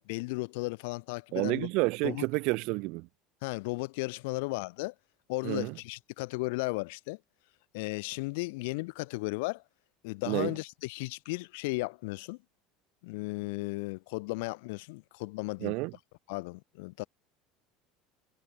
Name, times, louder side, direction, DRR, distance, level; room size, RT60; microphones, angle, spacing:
voice 1, 0.0-1.7 2.0-2.3 3.4-4.9 5.3-7.2 7.7-9.6 10.0-12.4 13.0-15.8 16.3-17.0, left 26 dB, 80° left, 0.4 m, -35 dB
voice 2, 1.3-3.1 5.4-5.8 10.3-10.6 15.6-15.9, right 26 dB, 65° right, 0.3 m, -30 dB
supercardioid pair, 115°, 0 cm